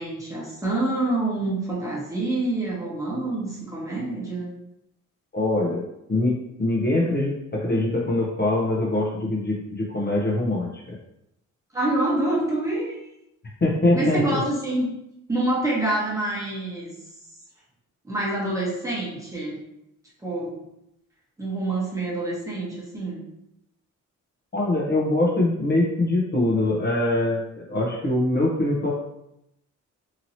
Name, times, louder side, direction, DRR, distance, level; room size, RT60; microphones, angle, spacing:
voice 1, 0.0-4.5 11.7-13.0 13.9-14.9 15.3-16.9 18.1-19.6 20.2-20.6 21.4-23.2, right 2 dB, 10° right, -5 dB, 1.2 m, -26 dB
voice 2, 5.3-5.8 6.1-6.3 6.6-10.7 13.6-14.4 24.5-28.9, left 2 dB, 35° left, -4 dB, 0.8 m, -23 dB
2.9 x 2.8 x 2.7 m, 0.84 s
cardioid pair, 90°, 30 cm